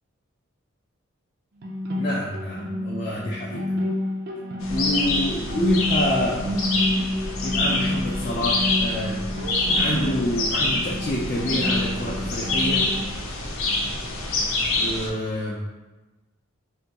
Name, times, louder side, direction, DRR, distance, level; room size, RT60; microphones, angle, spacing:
sound 1, 1.6-13.0, left 1 dB, 50° right, 0.4 m, -29 dB
voice 1, 2.0-3.7 4.7-6.4 7.4-9.2 9.7-12.8 14.8-15.6, left 1 dB, 40° left, -5 dB, 0.5 m, -28 dB
sound 2, 4.6-15.1, left 2 dB, 80° left, 0.6 m, -26 dB
3.5 x 2.2 x 2.8 m, 1.1 s
head